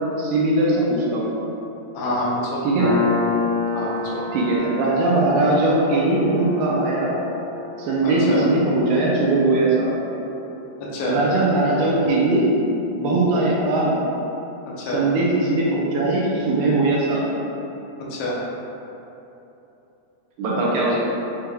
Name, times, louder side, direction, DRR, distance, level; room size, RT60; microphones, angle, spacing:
voice 1, 0.2-1.3 2.6-2.9 4.3-7.1 7.8-10.0 11.0-12.5 12.9-14.0 14.9-17.3 20.4-21.1, right 2 dB, 80° right, -5 dB, 2.0 m, -20 dB
voice 2, 1.9-2.6 3.7-4.2 8.0-8.4 10.8-11.2 14.8-15.0 18.1-18.4 21.1-21.2, left 1 dB, 90° left, -5 dB, 2.4 m, -27 dB
Piano, 2.8-10.0, left 4 dB, 65° left, 1.6 m, -29 dB
7.3 x 3.1 x 2.3 m, 2.9 s
omnidirectional pair, 3.8 m